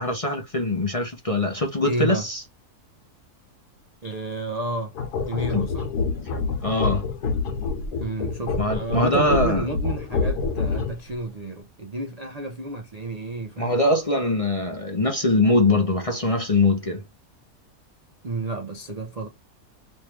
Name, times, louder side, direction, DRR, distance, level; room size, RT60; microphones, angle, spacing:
voice 1, 0.0-2.4 5.5-5.7 6.6-7.1 8.6-9.6 13.6-17.0, left 2 dB, 40° left, 0.5 m, -22 dB
voice 2, 1.8-2.3 4.0-4.9 5.3-5.9 8.0-13.8 18.2-19.3, right 2 dB, 60° right, 0.4 m, -31 dB
sound 1, 4.9-11.1, left 4 dB, 85° left, 1.5 m, -27 dB
3.2 x 3.2 x 3.2 m
omnidirectional pair, 1.7 m